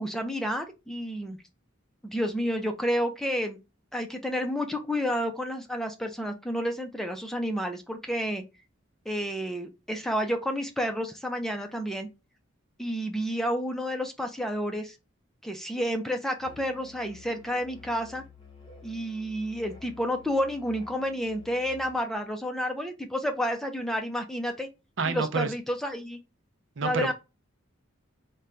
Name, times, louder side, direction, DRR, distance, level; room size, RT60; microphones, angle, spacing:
voice 1, 0.0-1.4 2.0-3.6 3.9-8.4 9.1-12.1 12.8-15.0 15.4-18.2 18.8-24.7 25.0-26.2 26.8-27.1, equal, ahead, 0.4 m, -30 dB
Musical instrument, 16.4-22.0, left 4 dB, 25° left, 0.8 m, -51 dB
voice 2, 25.0-25.5 26.8-27.1, right 4 dB, 65° right, 0.5 m, -28 dB
4.3 x 2.2 x 3.7 m
head